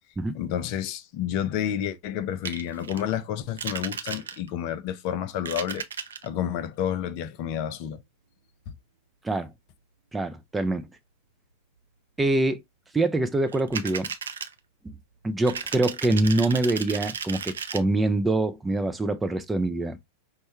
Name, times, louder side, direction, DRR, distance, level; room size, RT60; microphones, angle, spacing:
voice 1, 0.3-5.8 6.2-8.0, left 10 dB, 45° left, 0.4 m, -30 dB
sound 1, 2.4-3.0 3.6-4.6 5.3-6.3 13.5-14.5 15.4-17.8, right 7 dB, 65° right, 0.4 m, -34 dB
voice 2, 10.1-10.8 12.2-12.6 12.9-14.1 15.2-20.0, right 2 dB, 10° right, 0.4 m, -24 dB
5.3 x 2.1 x 2.9 m
figure-of-eight pair, 90°, 0 cm